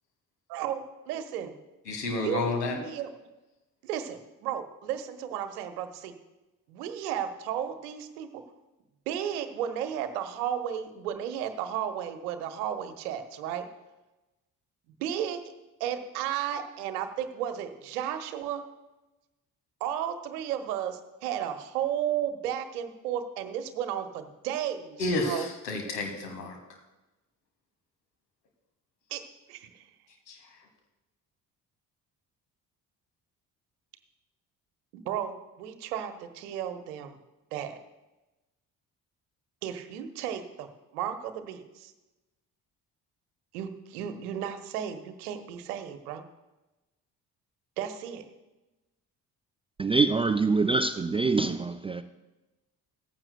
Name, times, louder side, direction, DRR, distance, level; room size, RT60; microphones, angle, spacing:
voice 1, 0.5-1.5 2.2-2.4 2.7-3.1 3.8-6.2 6.7-8.4 9.1-13.7 15.0-15.4 15.8-18.6 19.8-25.5 29.1-29.2 29.5-29.8 34.9-37.2 37.5-37.8 39.6-41.9 43.5-46.2 47.8-48.3, right 9 dB, 70° right, 1.1 m, -34 dB
voice 2, 1.9-2.8 25.0-26.6 30.3-30.4, left 2 dB, 75° left, 1.8 m, -30 dB
voice 3, 49.8-52.0, right 4 dB, 15° right, 0.4 m, -25 dB
16.0 x 14.5 x 2.2 m
figure-of-eight pair, 45°, 48 cm